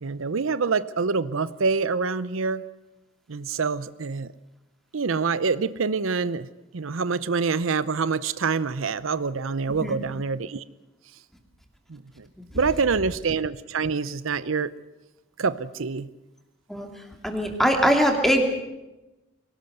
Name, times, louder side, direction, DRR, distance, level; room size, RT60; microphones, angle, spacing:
voice 1, 0.0-2.6 3.3-4.3 4.9-6.5 6.7-10.6 11.9-12.3 12.5-14.7 15.4-16.1, right 4 dB, 85° right, 16 dB, 0.7 m, -26 dB
voice 2, 9.8-10.1 16.7-16.9 17.2-18.4, equal, ahead, 3 dB, 2.8 m, -21 dB
23.0 x 18.0 x 8.0 m, 1.0 s
head